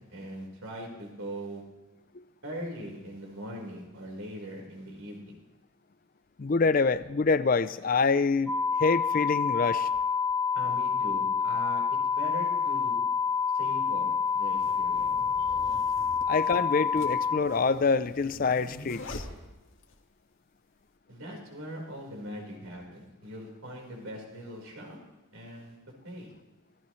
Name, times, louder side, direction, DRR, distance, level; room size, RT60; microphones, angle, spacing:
voice 1, 0.0-1.6 2.4-5.4 10.5-11.8 12.1-13.0 13.5-15.1 16.2-16.3 21.1-25.0 25.3-25.8 26.0-26.3, right 1 dB, 80° right, 0 dB, 4.4 m, -41 dB
voice 2, 6.4-9.9 16.2-19.3, left 4 dB, 40° left, 15 dB, 0.4 m, -26 dB
sound 1, 8.5-17.4, left 6 dB, 5° left, 1.0 m, -28 dB
sound 2, 12.5-12.6 13.6-20.0, left 1 dB, 70° left, 1.8 m, -45 dB
25.5 x 16.5 x 3.2 m, 1.1 s
head